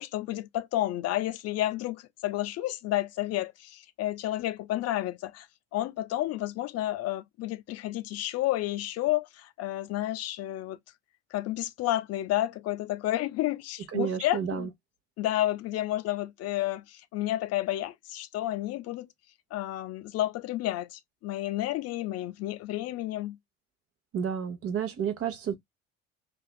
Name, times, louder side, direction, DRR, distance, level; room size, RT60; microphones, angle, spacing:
voice 1, 0.0-5.5 5.7-10.8 11.3-14.7 15.2-19.1 19.5-23.4, left 14 dB, 50° left, 0.4 m, -31 dB
voice 2, 13.9-14.7 24.1-25.6, right 8 dB, 45° right, 0.8 m, -30 dB
2.5 x 2.3 x 2.2 m
hypercardioid pair, 70°, 32 cm